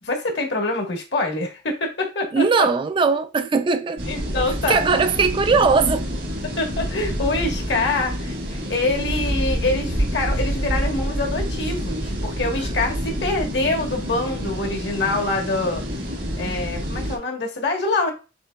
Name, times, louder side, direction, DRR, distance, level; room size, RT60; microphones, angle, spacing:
voice 1, 0.0-2.7 4.1-5.1 6.6-15.8 16.3-18.1, left 2 dB, 65° left, 1.2 m, -25 dB
voice 2, 2.3-4.0 4.7-6.0, right 4 dB, 25° right, 0.3 m, -19 dB
sound 1, 4.0-17.2, equal, 75° right, 1.4 m, -27 dB
6.8 x 2.9 x 2.2 m
head